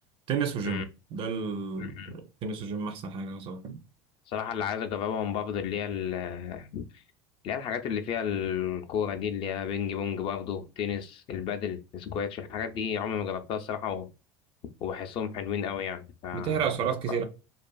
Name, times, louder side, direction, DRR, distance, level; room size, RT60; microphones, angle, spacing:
voice 1, 0.3-0.8 1.1-3.8 16.3-17.3, right 6 dB, 50° right, 0.5 m, -31 dB
voice 2, 1.8-2.2 4.3-6.8 7.4-14.1 14.8-16.7 17.1-17.3, left 8 dB, 50° left, 0.4 m, -32 dB
2.4 x 2.3 x 2.3 m
hypercardioid pair, 85°, 12 cm